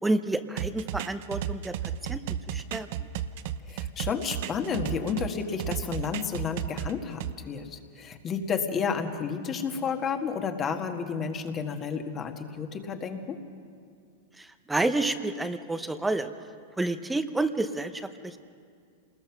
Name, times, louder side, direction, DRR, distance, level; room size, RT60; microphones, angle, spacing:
voice 1, 0.0-2.2 2.5-3.1 14.4-16.3 16.8-18.4, right 2 dB, 5° right, 10 dB, 0.9 m, -29 dB
sound 1, 0.6-5.3 5.6-7.3, right 10 dB, 60° right, 0.8 m, -33 dB
voice 2, 3.7-13.4, left 6 dB, 25° left, 5 dB, 1.8 m, -31 dB
27.0 x 20.5 x 6.0 m, 2.2 s
hypercardioid pair, 130°, 0 cm